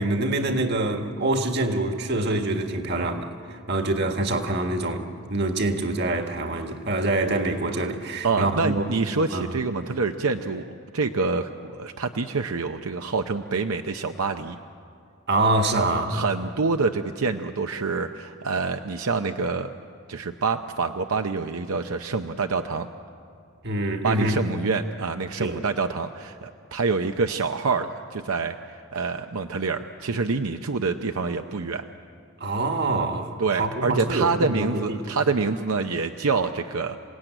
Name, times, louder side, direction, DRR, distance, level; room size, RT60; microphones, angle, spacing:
voice 1, 0.0-8.8 9.3-9.5 15.3-16.1 23.6-24.4 25.4-25.6 32.4-35.0, right 2 dB, 50° right, 1.7 m, -25 dB
voice 2, 8.2-14.6 15.8-19.7 20.1-22.9 24.0-31.9 33.4-37.0, right 4 dB, 80° right, 0.7 m, -26 dB
27.5 x 18.0 x 9.1 m
head